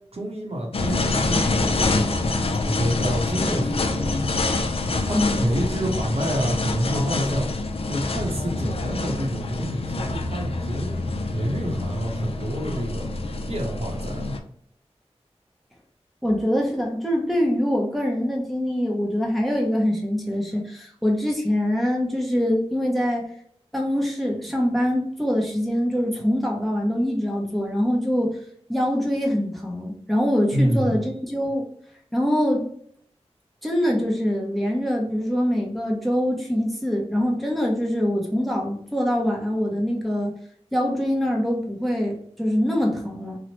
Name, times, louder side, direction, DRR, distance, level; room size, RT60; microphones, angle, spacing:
voice 1, 0.1-4.2 5.0-7.5 7.9-13.1 13.5-14.4 30.5-31.0, equal, 65° right, 0 dB, 0.7 m, -28 dB
sound 1, 0.7-14.4, left 2 dB, 60° left, 0.4 m, -26 dB
voice 2, 5.1-5.5 16.2-23.3 23.7-28.4 28.7-31.7 32.1-32.7 33.6-40.3 40.7-43.4, equal, ahead, -1 dB, 0.6 m, -24 dB
2.9 x 2.0 x 2.9 m, 0.65 s
wide cardioid pair, 70°, 11 cm